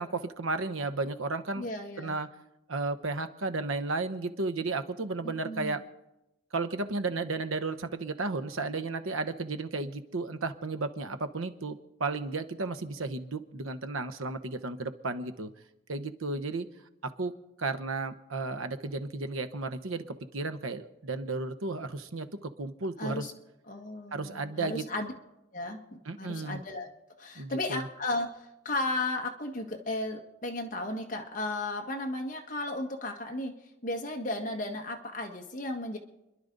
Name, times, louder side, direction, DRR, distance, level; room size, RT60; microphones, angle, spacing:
voice 1, 0.0-1.7 2.0-2.3 2.7-5.8 6.5-15.5 15.9-16.7 17.0-17.3 17.6-20.0 20.3-23.2 24.1-24.8 26.0-26.6 27.4-27.9, right 3 dB, 80° right, 10 dB, 1.0 m, -33 dB
voice 2, 1.6-2.2 5.2-5.8 23.0-23.3 23.7-25.1 25.5-26.9 27.2-33.5 33.8-36.0, left 2 dB, 40° left, 2 dB, 1.6 m, -34 dB
29.5 x 11.5 x 4.0 m, 0.96 s
head